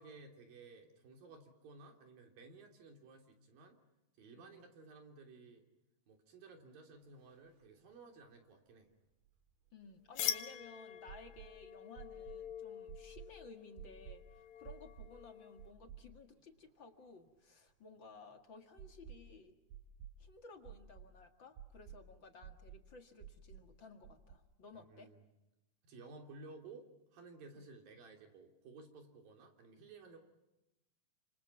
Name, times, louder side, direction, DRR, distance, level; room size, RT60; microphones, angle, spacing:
voice 1, 0.0-3.8 4.2-5.6 6.1-8.9 24.7-25.2 25.8-30.2, right 3 dB, 65° right, 3 dB, 5.1 m, -56 dB
voice 2, 4.4-4.7 9.7-19.6 20.2-25.1 27.5-27.6, left 3 dB, 40° left, 5 dB, 2.0 m, -57 dB
sound 1, 7.3-7.4 7.6-7.7 9.2-10.5 11.1-11.5 12.0-12.4 12.9-13.3 13.8-14.2 14.6-15.2 15.6-16.4 16.7-16.8 18.8-19.3 19.7-20.2 20.6-21.1 21.6-22.0 22.4-22.8 23.2-23.7 24.0-24.3, right 10 dB, 85° right, 4.2 m, -52 dB
sound 2, 10.2-15.7, left 9 dB, 60° left, 2.4 m, -44 dB
29.5 x 27.5 x 5.8 m, 0.95 s
omnidirectional pair, 4.4 m